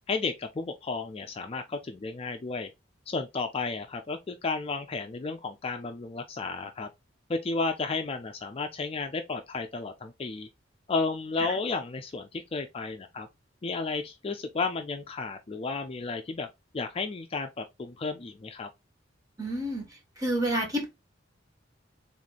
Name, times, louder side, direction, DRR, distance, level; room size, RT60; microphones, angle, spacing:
voice 1, 0.1-2.7 3.1-6.9 7.3-10.5 10.9-13.3 13.6-16.5 16.7-18.7, left 4 dB, 30° left, 0.4 m, -33 dB
voice 2, 19.4-19.9 20.2-20.8, right 1 dB, 20° right, 1.6 m, -28 dB
3.7 x 3.1 x 4.0 m
head